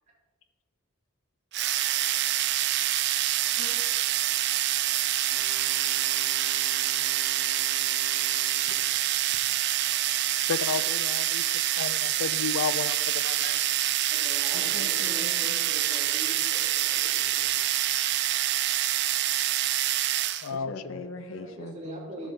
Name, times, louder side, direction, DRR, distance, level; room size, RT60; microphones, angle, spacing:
sound 1, 1.5-20.5, right 13 dB, 50° right, 0.4 m, -26 dB
Wind instrument woodwind instrument, 5.3-9.0, right 5 dB, 15° right, 1.1 m, -50 dB
voice 1, 6.8-7.3 8.7-9.8 14.5-15.6 20.5-22.3, left 2 dB, 70° left, 8 dB, 0.9 m, -43 dB
voice 2, 10.5-11.4 11.8-13.6 20.4-21.1, left 6 dB, 90° left, 16 dB, 0.4 m, -32 dB
voice 3, 14.1-17.7 21.4-22.3, right 1 dB, 35° right, -5 dB, 3.5 m, -42 dB
13.0 x 7.1 x 4.2 m, 1.5 s
head